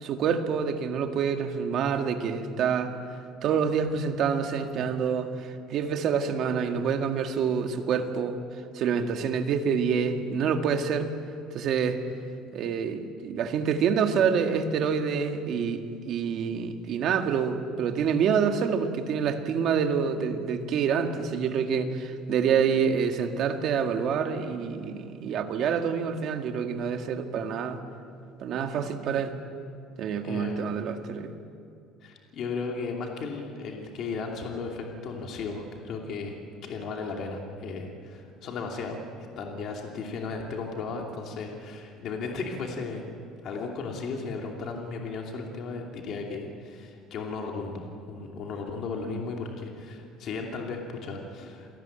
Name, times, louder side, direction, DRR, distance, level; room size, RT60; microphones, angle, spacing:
voice 1, 0.0-2.9 3.4-8.4 8.7-11.1 11.5-12.0 12.5-27.8 28.4-29.3 30.0-31.3, right 6 dB, 45° right, 6 dB, 1.8 m, -27 dB
voice 2, 30.2-30.8 32.0-36.3 36.6-39.0 39.4-43.0 43.4-51.7, left 4 dB, 45° left, 1 dB, 2.8 m, -35 dB
28.0 x 18.5 x 8.9 m, 2.4 s
cardioid pair, 170°, 0 cm